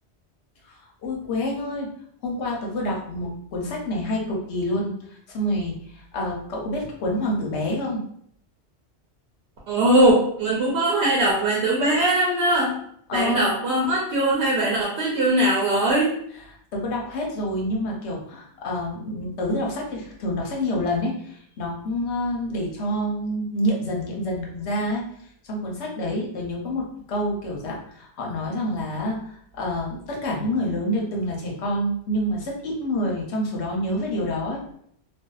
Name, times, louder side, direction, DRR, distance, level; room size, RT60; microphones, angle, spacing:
voice 1, 0.6-2.0 2.2-8.0 13.1-13.6 16.4-25.1 25.4-34.6, left 1 dB, 80° left, -1 dB, 1.0 m, -27 dB
voice 2, 9.7-12.7 13.1-16.1, right 1 dB, 70° right, -4 dB, 0.9 m, -20 dB
2.5 x 2.3 x 2.3 m, 0.66 s
omnidirectional pair, 1.1 m